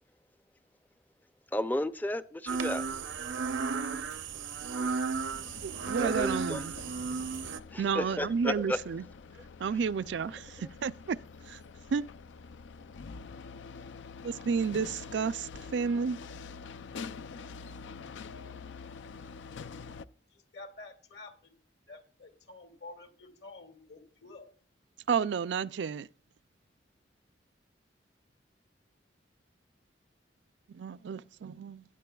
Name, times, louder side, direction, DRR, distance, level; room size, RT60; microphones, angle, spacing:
voice 1, 1.5-2.8 6.0-6.7 7.7-8.8, left 1 dB, 10° left, 0.4 m, -33 dB
sound 1, 2.5-7.6, right 5 dB, 90° right, 0.7 m, -34 dB
sound 2, 5.3-20.0, left 5 dB, 80° left, 0.4 m, -46 dB
voice 2, 5.6-6.7 7.8-9.0 9.6-11.2 11.5-11.6 11.9-12.1 14.2-16.2 25.1-26.1 30.7-31.8, right 6 dB, 70° right, 0.4 m, -31 dB
voice 3, 20.3-21.5 21.9-24.5, left 3 dB, 65° left, 2.2 m, -49 dB
19.0 x 9.8 x 2.3 m
head